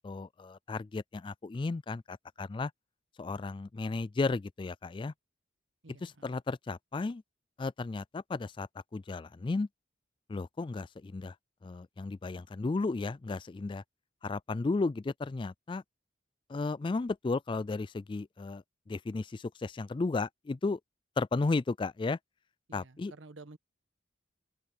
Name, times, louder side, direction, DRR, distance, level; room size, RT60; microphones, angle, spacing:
voice 1, 0.0-2.7 3.2-5.1 6.0-7.2 7.6-9.7 10.3-11.4 11.6-13.8 14.2-15.8 16.5-20.8 21.2-22.2 22.7-23.1, left 3 dB, 25° left, 0.3 m, -34 dB
voice 2, 5.8-6.4 22.7-23.6, right 3 dB, 85° right, 1.3 m, -52 dB
open air
head